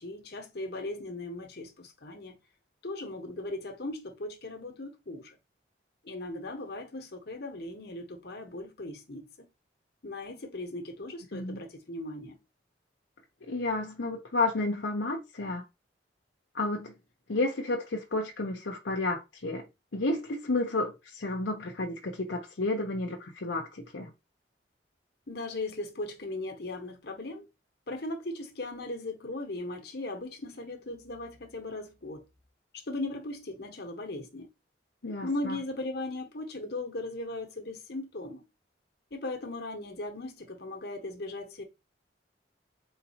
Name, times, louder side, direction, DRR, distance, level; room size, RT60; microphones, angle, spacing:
voice 1, 0.0-2.4 2.8-5.4 6.0-9.5 10.0-12.4 25.3-27.5 27.9-32.3 32.7-34.5 35.2-38.4 39.1-41.6, left 2 dB, 55° left, 1.0 m, -38 dB
voice 2, 11.3-11.6 13.5-15.6 16.5-16.9 17.3-19.7 19.9-24.1 35.0-35.6, left 2 dB, 80° left, 0.8 m, -31 dB
4.0 x 3.9 x 2.8 m
head